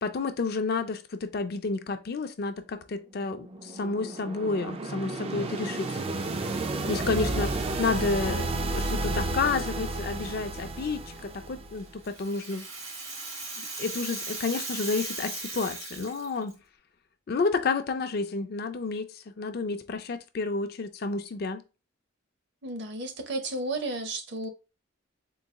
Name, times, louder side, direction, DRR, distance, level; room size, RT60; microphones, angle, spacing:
voice 1, 0.0-6.0 6.9-12.6 13.6-16.5 17.3-21.6, left 4 dB, 50° left, 0.4 m, -30 dB
sound 1, 3.2-12.0, right 2 dB, 30° right, 0.3 m, -32 dB
Rattle (instrument), 11.8-16.5, right 3 dB, 85° right, 1.9 m, -37 dB
voice 2, 22.6-24.5, right 2 dB, 55° right, 0.7 m, -33 dB
3.9 x 2.3 x 3.5 m
head